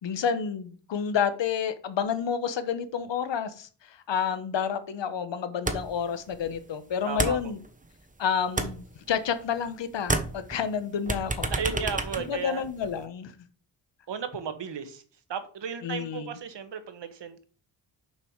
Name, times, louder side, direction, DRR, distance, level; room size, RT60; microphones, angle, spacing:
voice 1, 0.0-7.6 8.2-11.5 12.2-13.3 15.8-16.4, left 7 dB, 65° left, 11 dB, 1.1 m, -30 dB
sound 1, 5.7-6.1 6.3-8.1 8.4-9.7 10.0-13.0, right 2 dB, 15° right, 1.0 m, -31 dB
voice 2, 7.0-7.4 11.5-12.6 14.1-15.0 15.3-17.4, right 7 dB, 60° right, 9 dB, 1.3 m, -34 dB
6.7 x 5.6 x 4.6 m, 0.40 s
cardioid pair, 80°, 47 cm